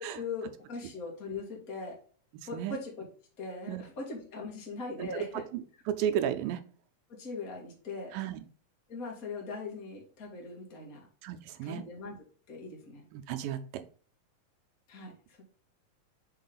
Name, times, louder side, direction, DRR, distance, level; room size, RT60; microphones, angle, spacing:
voice 1, 0.1-2.0 2.5-2.9 3.4-5.4 7.1-8.2 8.9-11.0 11.6-12.2 12.5-13.1 14.9-15.1, left 4 dB, 30° left, -2 dB, 2.1 m, -40 dB
voice 2, 5.5-6.6 8.1-8.4 11.2-11.8 13.1-13.8, right 10 dB, 85° right, 8 dB, 2.4 m, -33 dB
5.9 x 4.6 x 4.0 m, 0.41 s
omnidirectional pair, 3.9 m